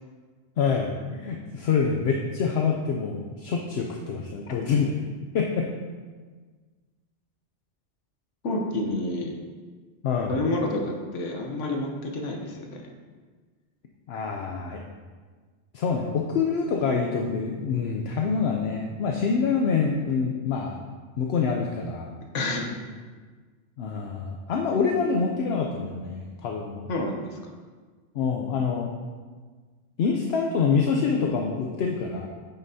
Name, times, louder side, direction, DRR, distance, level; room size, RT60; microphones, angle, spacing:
voice 1, 0.6-4.9 5.3-5.7 10.0-10.3 14.1-14.8 15.7-20.8 21.2-22.1 23.8-26.9 28.1-28.9 30.0-32.3, left 5 dB, 65° left, 1 dB, 0.8 m, -26 dB
voice 2, 8.4-9.4 10.3-12.9 22.3-22.8 26.9-27.5, left 2 dB, 85° left, 1 dB, 1.2 m, -29 dB
8.8 x 6.1 x 2.7 m, 1.4 s
omnidirectional pair, 1.2 m